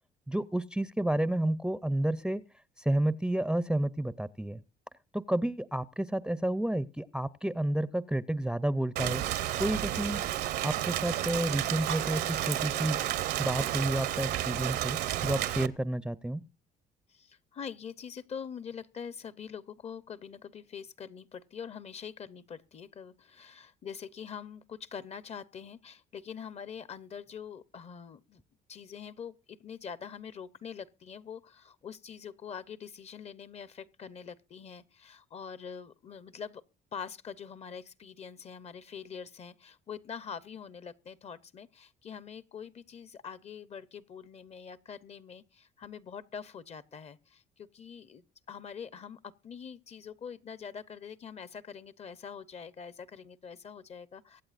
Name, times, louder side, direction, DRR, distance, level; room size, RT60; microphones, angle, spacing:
voice 1, 0.3-2.4 2.8-4.6 5.1-9.2 9.6-10.2 10.6-13.0 13.4-15.0 15.2-16.4, right 1 dB, 5° right, 0.5 m, -30 dB
Rain, 9.0-15.7, right 13 dB, 75° right, 0.8 m, -31 dB
voice 2, 17.1-28.4 28.7-36.6 36.9-54.4, left 7 dB, 40° left, 0.7 m, -44 dB
23.5 x 8.6 x 2.5 m
cardioid pair, 110°, 17 cm